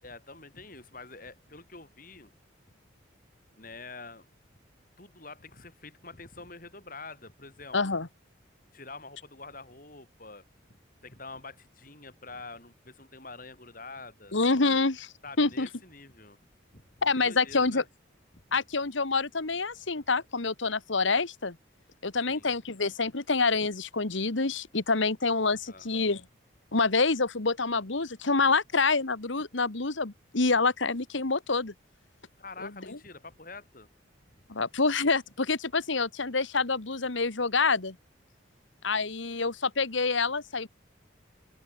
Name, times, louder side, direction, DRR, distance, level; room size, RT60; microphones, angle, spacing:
voice 1, 0.0-2.3 3.6-4.3 5.0-7.8 8.7-10.4 11.0-14.4 15.2-16.4 16.7-17.9 18.3-18.4 22.3-22.5 25.7-25.9 32.4-33.9, left 3 dB, 45° left, 5.2 m, -46 dB
voice 2, 7.7-8.1 14.3-15.1 15.4-15.7 17.0-17.8 18.5-21.6 22.0-26.2 26.7-31.7 32.6-33.0 34.5-38.0 38.8-40.7, left 4 dB, 75° left, 1.6 m, -27 dB
open air
head